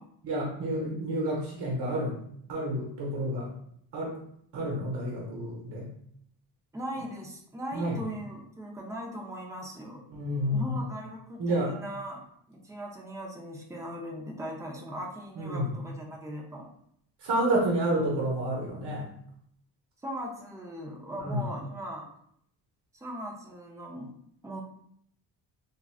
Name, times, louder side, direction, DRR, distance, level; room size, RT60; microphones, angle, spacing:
voice 1, 0.2-2.2 2.5-3.5 3.9-4.1 4.5-5.9 7.7-8.0 10.1-10.8 11.4-11.7 15.4-15.7 17.2-19.1 21.2-21.5, right 1 dB, 65° right, -2 dB, 1.0 m, -29 dB
voice 2, 6.7-10.0 10.5-12.2 12.5-16.7 20.0-22.1 22.9-24.1 24.4-24.6, equal, 5° right, -1 dB, 0.6 m, -39 dB
3.0 x 2.5 x 2.3 m, 0.69 s
cardioid pair, 80°, 45 cm